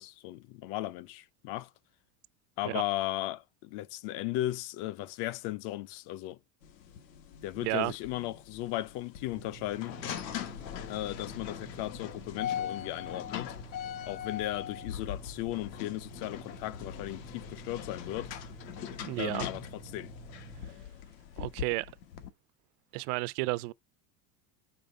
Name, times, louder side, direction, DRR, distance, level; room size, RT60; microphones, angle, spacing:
voice 1, 0.0-1.7 2.6-6.4 7.4-10.0 10.9-13.6 14.0-18.3 19.2-20.1, left 15 dB, 50° left, 0.5 m, -36 dB
sound 1, 6.6-22.3, left 9 dB, 90° left, 1.3 m, -41 dB
voice 2, 7.6-7.9 19.0-19.4 21.4-21.9 22.9-23.7, right 22 dB, 65° right, 0.5 m, -32 dB
sound 2, 9.3-20.7, right 11 dB, 10° right, 0.4 m, -51 dB
5.3 x 3.4 x 5.2 m
supercardioid pair, 120°, 49 cm